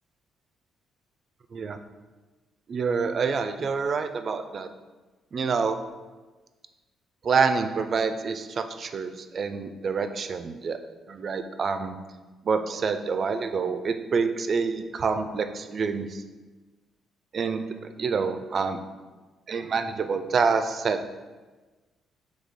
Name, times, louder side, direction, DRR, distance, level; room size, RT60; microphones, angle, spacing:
voice 1, 2.7-4.7 5.3-5.8 7.2-10.8 11.1-12.0 12.4-16.2 17.3-18.8 19.5-21.1, right 5 dB, 50° right, 9 dB, 0.3 m, -27 dB
4.0 x 3.2 x 3.5 m, 1.3 s
cardioid pair, 90°, 0 cm